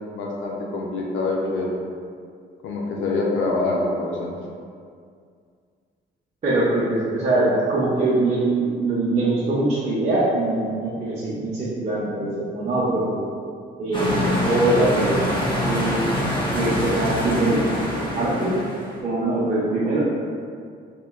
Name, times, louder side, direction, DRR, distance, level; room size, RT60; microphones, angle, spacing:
voice 1, 0.1-1.7 2.6-4.4, left 2 dB, 75° left, -2 dB, 0.5 m, -25 dB
voice 2, 6.4-13.2 13.8-15.4 15.7-16.0 16.5-18.5 19.0-20.0, right 2 dB, 35° right, -9 dB, 0.6 m, -22 dB
sound 1, 13.9-19.0, left 1 dB, 25° left, 0.6 m, -25 dB
2.9 x 2.2 x 2.3 m, 2.2 s
cardioid pair, 90°, 20 cm